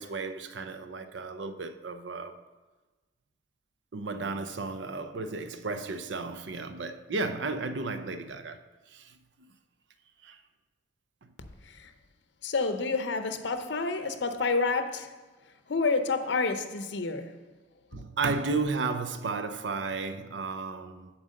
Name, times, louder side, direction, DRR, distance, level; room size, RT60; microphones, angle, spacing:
voice 1, 0.0-2.4 3.9-8.6 8.9-9.2 10.2-10.4 17.9-21.1, right 3 dB, 75° right, 0.6 m, -33 dB
voice 2, 12.4-15.1 15.7-17.4, left 4 dB, 70° left, 0.6 m, -29 dB
7.4 x 4.7 x 6.4 m
head